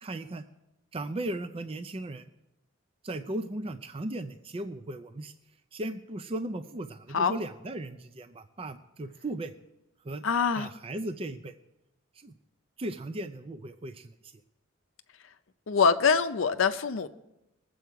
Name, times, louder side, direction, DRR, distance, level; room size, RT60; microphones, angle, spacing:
voice 1, 0.0-0.4 0.9-2.3 3.0-5.3 5.7-9.5 10.0-10.2 10.6-11.5 12.1-12.3 12.8-14.3, right 1 dB, 30° right, 9 dB, 0.5 m, -36 dB
voice 2, 10.2-10.7 15.7-17.1, left 5 dB, 70° left, 9 dB, 0.6 m, -24 dB
21.0 x 7.8 x 4.7 m, 0.91 s
head